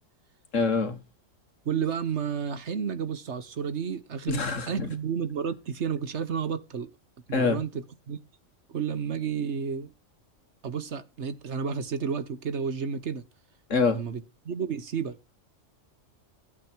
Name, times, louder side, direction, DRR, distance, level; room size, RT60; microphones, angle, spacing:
voice 1, 0.5-1.0 4.3-4.9 7.3-7.6 13.7-14.0, left 4 dB, 70° left, 2.2 m, -25 dB
voice 2, 1.6-6.9 7.3-8.2 8.7-9.9 10.6-13.2 13.9-15.2, right 7 dB, 60° right, 1.3 m, -31 dB
16.0 x 8.6 x 4.5 m
omnidirectional pair, 1.3 m